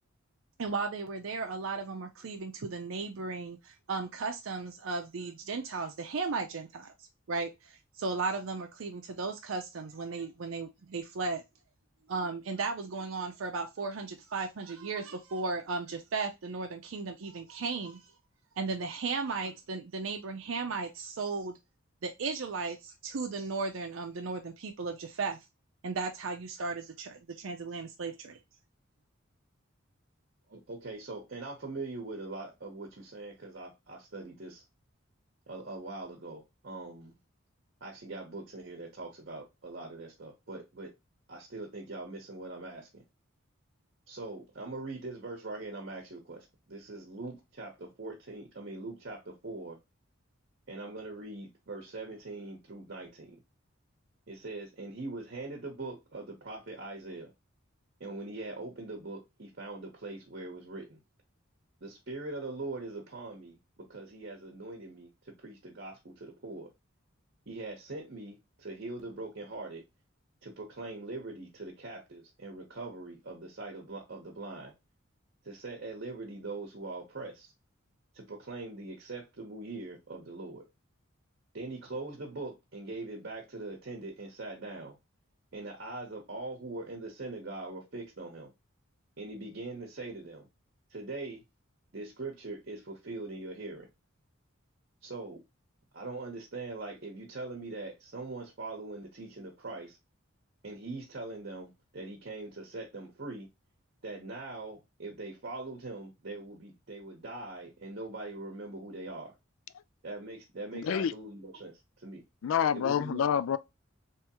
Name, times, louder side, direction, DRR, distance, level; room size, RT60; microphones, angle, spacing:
voice 1, 0.6-6.9 7.3-11.4 12.1-18.1 18.6-21.6 22.0-25.4 25.8-28.4, right 4 dB, 75° right, 0.5 m, -35 dB
voice 2, 30.5-34.6 35.5-37.2 37.8-40.9 41.3-43.0 44.1-49.8 50.7-53.4 54.3-57.3 58.0-61.0 61.8-66.7 67.5-69.8 70.4-74.7 75.4-77.5 78.1-80.6 81.5-84.9 85.5-88.5 89.2-90.5 90.9-91.4 91.9-93.9 95.0-95.4 95.9-100.0 100.6-103.5 104.0-109.3 110.0-111.7 112.0-112.2 112.7-113.3, right 2 dB, 55° right, 0.9 m, -42 dB
voice 3, 110.7-111.1 112.4-113.6, left 8 dB, 75° left, 0.3 m, -27 dB
3.5 x 3.1 x 2.9 m
head